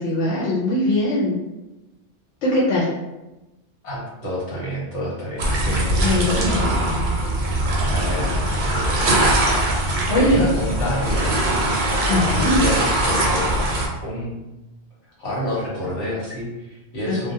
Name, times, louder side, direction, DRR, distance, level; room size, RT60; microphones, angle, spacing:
voice 1, 0.0-1.4 2.4-2.9 6.0-7.0 10.1-10.5 12.1-12.6 17.1-17.3, left 1 dB, 90° left, -6 dB, 0.9 m, -21 dB
voice 2, 3.8-6.8 7.8-9.3 10.1-13.6 14.0-14.4 15.2-17.3, equal, 70° left, -6 dB, 1.3 m, -29 dB
sound 1, 5.4-13.9, right 1 dB, 55° right, 0.6 m, -21 dB
2.5 x 2.1 x 2.6 m, 1.0 s
omnidirectional pair, 1.2 m